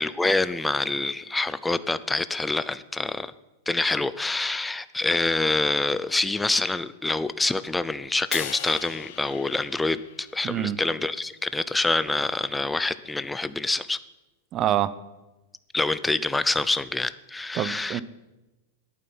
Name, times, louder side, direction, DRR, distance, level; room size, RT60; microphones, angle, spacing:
voice 1, 0.0-3.3 3.7-14.0 15.7-18.0, left 2 dB, 5° left, 15 dB, 0.5 m, -26 dB
Crash cymbal, 8.3-10.7, left 13 dB, 60° left, 0.9 m, -37 dB
voice 2, 10.4-10.8 14.5-14.9 17.5-18.0, right 11 dB, 30° right, 16 dB, 0.7 m, -25 dB
11.0 x 9.1 x 9.6 m, 1.0 s
supercardioid pair, 155°, 0 cm